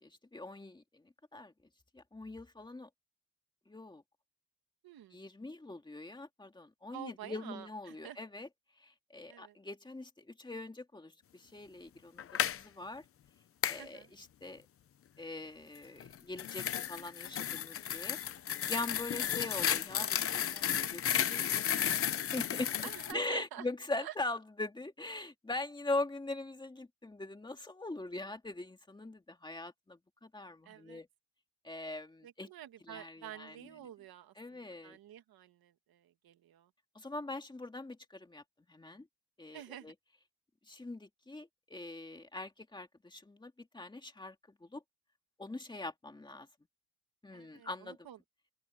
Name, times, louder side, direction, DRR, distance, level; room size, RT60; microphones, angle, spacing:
voice 1, 0.0-1.0 1.3-1.5 1.9-2.9 3.7-4.0 5.1-8.5 8.8-12.3 12.5-13.0 13.7-14.6 15.2-18.2 18.7-22.0 22.3-22.7 23.1-31.1 31.6-32.5 32.9-33.5 34.4-35.0 37.0-38.4 38.7-39.1 39.4-39.9 40.7-44.4 44.6-44.8 45.4-46.5 47.2-48.0, left 2 dB, 10° left, 2.1 m, -42 dB
voice 2, 4.8-5.2 6.9-8.2 9.3-9.6 13.8-14.1 22.8-23.7 24.0-24.2 30.6-31.0 32.2-36.7 39.5-39.9 47.3-48.2, right 12 dB, 50° right, 1.9 m, -49 dB
sound 1, 12.2-12.6 13.6-13.8 16.0-23.1, left 9 dB, 30° left, 0.6 m, -33 dB
open air
cardioid pair, 160°, 45 cm